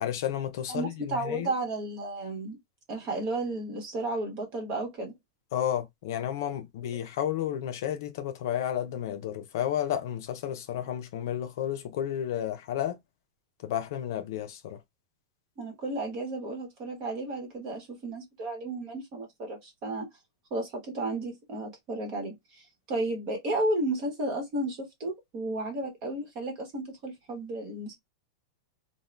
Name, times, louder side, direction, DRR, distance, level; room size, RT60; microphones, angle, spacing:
voice 1, 0.0-1.5 5.5-13.0 13.6-14.8, left 10 dB, 50° left, 0.5 m, -32 dB
voice 2, 0.7-2.6 2.9-5.1 15.6-20.1 20.5-22.3 22.9-28.0, right 2 dB, 30° right, 1.1 m, -33 dB
2.6 x 2.2 x 3.2 m
supercardioid pair, 180°, 2 cm